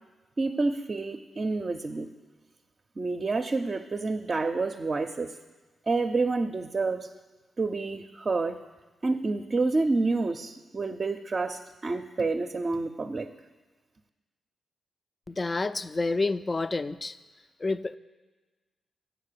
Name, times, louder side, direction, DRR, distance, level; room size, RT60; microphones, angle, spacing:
voice 1, 0.4-2.1 3.0-5.3 5.9-7.1 7.6-8.6 9.0-13.3, right 3 dB, 45° right, 5 dB, 0.5 m, -28 dB
voice 2, 15.3-17.2 17.6-18.0, left 3 dB, 35° left, 14 dB, 0.4 m, -29 dB
7.7 x 6.7 x 6.6 m, 1.3 s
supercardioid pair, 45°, 0 cm